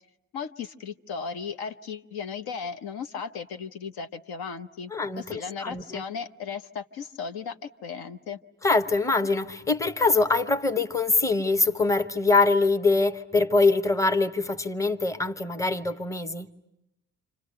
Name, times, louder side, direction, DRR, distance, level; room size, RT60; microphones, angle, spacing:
voice 1, 0.3-4.9 5.2-8.4, left 6 dB, 55° left, 1.0 m, -36 dB
voice 2, 4.9-6.0 8.6-16.5, left 3 dB, 5° left, 1.1 m, -24 dB
29.5 x 28.0 x 6.5 m
figure-of-eight pair, 45°, 45 cm